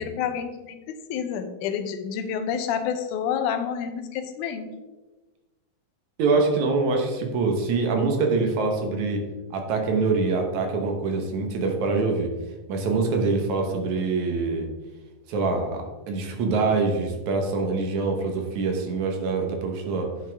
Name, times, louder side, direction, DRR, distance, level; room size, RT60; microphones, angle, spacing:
voice 1, 0.0-4.7, left 8 dB, 90° left, 9 dB, 2.3 m, -29 dB
voice 2, 6.2-9.2 9.5-12.3 12.7-14.7 15.3-20.1, right 4 dB, 75° right, 3 dB, 2.5 m, -24 dB
10.5 x 7.3 x 3.5 m, 1.2 s
omnidirectional pair, 3.5 m